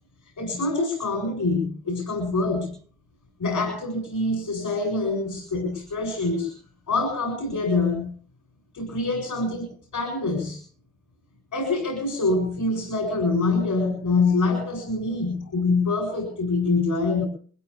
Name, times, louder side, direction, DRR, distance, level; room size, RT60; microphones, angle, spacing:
voice 1, 0.4-2.7 3.4-6.5 6.9-8.1 8.7-10.6 11.5-17.2, left 3 dB, 85° left, 2 dB, 7.9 m, -25 dB
24.0 x 16.5 x 3.5 m, 0.43 s
cardioid pair, 45°, 30 cm